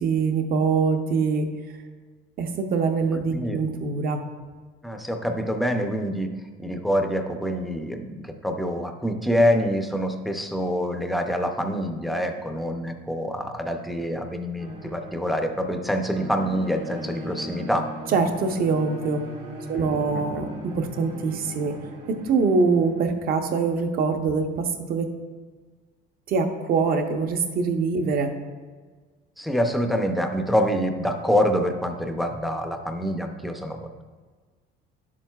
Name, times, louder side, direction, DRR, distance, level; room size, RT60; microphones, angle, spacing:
voice 1, 0.0-1.5 2.4-4.2 18.1-19.2 19.7-21.8 22.1-25.1 26.3-28.3, right 4 dB, 50° right, 5 dB, 0.8 m, -24 dB
voice 2, 4.8-6.3 6.6-17.9 19.7-20.2 29.4-34.0, equal, ahead, 5 dB, 0.5 m, -26 dB
sound 1, 14.6-23.1, equal, 85° right, 2.4 m, -39 dB
10.0 x 7.4 x 2.3 m, 1.5 s
cardioid pair, 160°, 20 cm